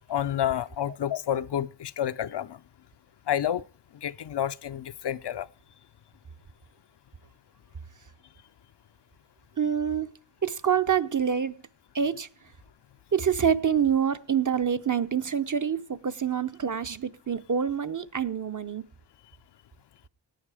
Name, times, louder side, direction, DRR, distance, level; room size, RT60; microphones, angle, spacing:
voice 1, 0.1-2.6 3.3-3.6 4.0-5.5, left 10 dB, 65° left, 0.6 m, -29 dB
voice 2, 9.6-10.1 10.4-11.5 11.9-12.3 13.1-18.8, right 8 dB, 45° right, 0.8 m, -26 dB
17.5 x 9.5 x 5.0 m
wide cardioid pair, 55°, 44 cm